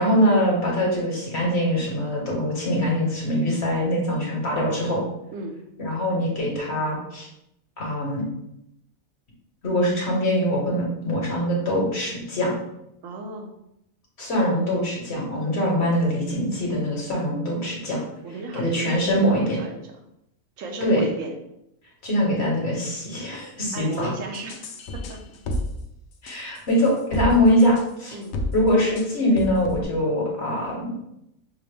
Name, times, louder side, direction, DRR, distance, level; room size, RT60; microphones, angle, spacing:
voice 1, 0.0-5.0 5.8-7.3 7.8-8.2 9.6-12.6 14.2-18.0 18.5-19.6 20.8-21.0 22.0-24.1 26.2-28.1 28.5-30.9, equal, 55° left, -2 dB, 1.3 m, -23 dB
voice 2, 13.0-13.5 18.2-19.8 20.6-21.4 23.7-25.2 28.1-28.4, right 2 dB, 75° right, 3 dB, 0.9 m, -35 dB
sound 1, 24.3-25.6 26.3-27.3 27.6-27.8 28.2-28.5 29.0-29.1 29.4-29.8, left 1 dB, 75° left, 1.0 m, -30 dB
5.9 x 2.0 x 3.3 m, 0.81 s
omnidirectional pair, 1.4 m